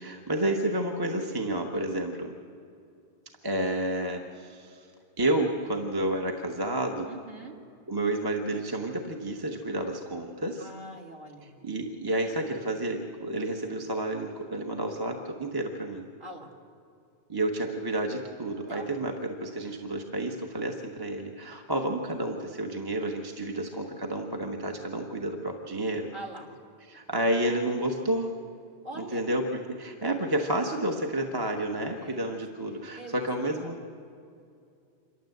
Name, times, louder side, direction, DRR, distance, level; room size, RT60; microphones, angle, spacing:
voice 1, 0.0-2.3 3.4-4.9 5.2-7.1 7.9-10.7 11.6-16.0 17.3-26.1 26.9-28.3 29.0-33.8, right 1 dB, 20° right, 2 dB, 1.1 m, -30 dB
voice 2, 7.1-7.6 10.6-11.5 16.2-16.5 18.7-18.9 26.1-26.5 28.8-29.3 32.0-32.4 32.9-33.3 33.6-33.7, right 1 dB, 40° right, 0 dB, 2.4 m, -43 dB
26.5 x 12.5 x 7.9 m, 2.5 s
omnidirectional pair, 1.2 m